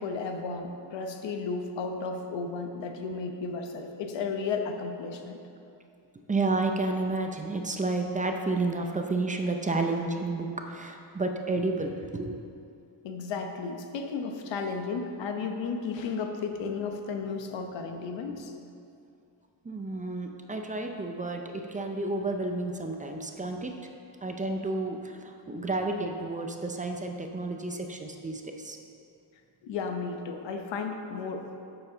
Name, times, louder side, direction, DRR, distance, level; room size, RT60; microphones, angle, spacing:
voice 1, 0.0-5.4 13.0-18.5 29.6-31.5, left 4 dB, 85° left, 5 dB, 1.0 m, -34 dB
voice 2, 6.3-12.4 19.6-23.7 24.2-28.8, right 2 dB, 20° right, 3 dB, 0.5 m, -31 dB
11.0 x 7.1 x 3.9 m, 2.5 s
wide cardioid pair, 160°, 43 cm